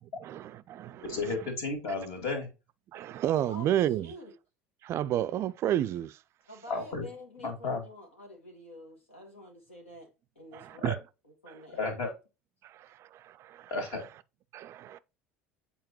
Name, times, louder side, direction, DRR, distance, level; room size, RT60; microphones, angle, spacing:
voice 1, 0.2-1.0 2.9-4.1 4.8-6.2 10.5-11.0 11.5-11.6 12.6-13.7 14.5-15.0, right 12 dB, 40° right, 0.3 m, -31 dB
voice 2, 1.0-2.5 6.7-7.0 7.4-7.8 10.8-10.9 11.7-12.1 13.7-14.1, left 3 dB, 55° left, 2.3 m, -33 dB
voice 3, 3.5-4.3 6.5-10.1 10.3-11.0 11.4-12.1, left 1 dB, 85° left, 1.4 m, -48 dB
7.8 x 4.3 x 2.9 m
figure-of-eight pair, 65°, 7 cm